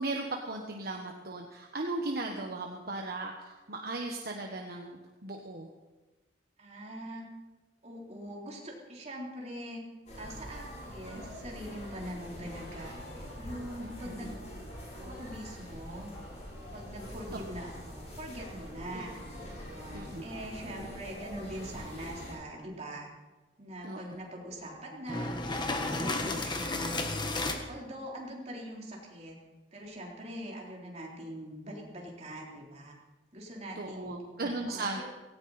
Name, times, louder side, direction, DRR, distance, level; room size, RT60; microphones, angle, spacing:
voice 1, 0.0-5.7 13.8-14.3 18.9-19.0 19.9-20.3 23.8-24.2 33.8-35.0, right 2 dB, 60° right, 1 dB, 1.4 m, -37 dB
voice 2, 6.6-7.2 7.8-9.8 10.2-14.4 15.0-16.1 16.7-19.2 19.6-23.1 23.6-25.4 25.9-27.1 27.7-29.4 29.7-33.0 33.3-34.2 34.7-35.0, equal, 40° right, -2 dB, 3.8 m, -43 dB
sound 1, 10.1-22.3, equal, 40° left, 6.7 m, -44 dB
sound 2, 25.1-27.6, left 2 dB, 25° left, 1.5 m, -32 dB
17.5 x 17.0 x 4.3 m, 1.2 s
head